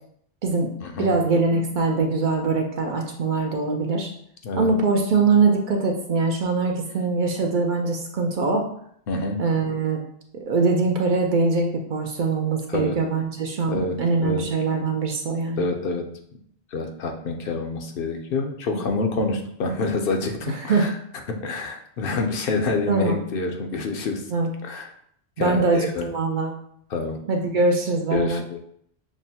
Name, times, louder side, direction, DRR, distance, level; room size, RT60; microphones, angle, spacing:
voice 1, 1.0-4.1 4.6-8.7 9.4-10.0 10.3-15.6 18.7-18.8 20.5-20.9 22.9-23.2 24.3-24.5 25.4-26.5 27.3-28.4, right 3 dB, 60° right, 2 dB, 0.6 m, -22 dB
voice 2, 9.1-9.4 12.7-13.0 13.7-14.4 15.6-16.0 16.7-21.0 21.3-24.3 24.6-24.9 25.4-26.1 26.9-27.2 28.1-28.6, left 3 dB, 65° left, 4 dB, 0.7 m, -27 dB
6.0 x 2.1 x 2.8 m, 0.68 s
omnidirectional pair, 1.1 m